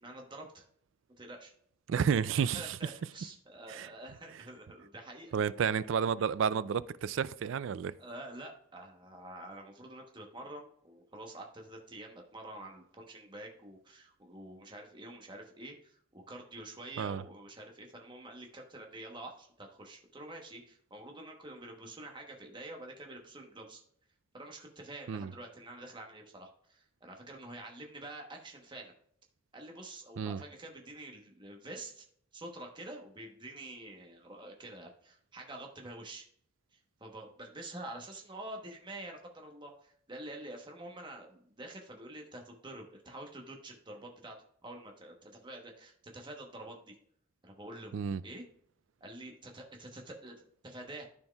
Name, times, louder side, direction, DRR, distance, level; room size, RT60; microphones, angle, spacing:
voice 1, 0.0-0.6 1.2-1.5 2.4-5.3 8.0-23.8 24.3-28.9 29.5-32.1 32.3-36.3 36.7-44.4 44.6-46.9 47.4-47.9 48.2-48.4 49.0-51.1, right 1 dB, 25° right, 1.0 m, -47 dB
voice 2, 1.9-2.8 3.7-3.9 5.3-7.9 17.0-17.2 25.1-25.3 30.2-30.4 47.9-48.2, right 7 dB, 65° right, 0.3 m, -31 dB
13.0 x 4.4 x 2.3 m
head